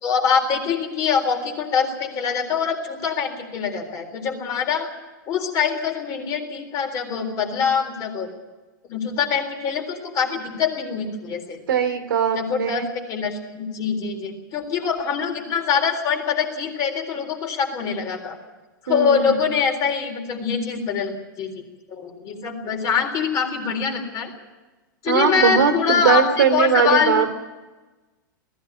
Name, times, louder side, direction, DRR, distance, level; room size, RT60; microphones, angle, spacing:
voice 1, 0.0-4.9 5.3-8.3 8.9-11.6 12.3-18.4 18.9-21.5 21.9-24.3 25.0-27.1, left 6 dB, 30° left, 3 dB, 3.8 m, -24 dB
voice 2, 11.7-12.9 18.9-19.5 25.1-27.3, right 7 dB, 80° right, 6 dB, 3.0 m, -20 dB
18.5 x 15.0 x 9.6 m, 1.2 s
hypercardioid pair, 140°, 11 cm